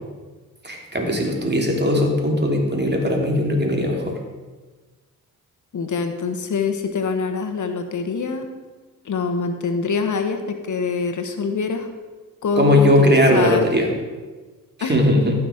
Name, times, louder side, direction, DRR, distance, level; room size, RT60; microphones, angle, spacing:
voice 1, 0.6-4.1 12.6-13.9 14.8-15.3, left 1 dB, 30° right, 1 dB, 2.8 m, -19 dB
voice 2, 5.7-8.5 9.0-11.9 12.4-13.6 14.8-15.0, left 5 dB, 60° left, 7 dB, 1.2 m, -25 dB
15.0 x 6.0 x 5.1 m, 1.3 s
cardioid pair, 60°, 34 cm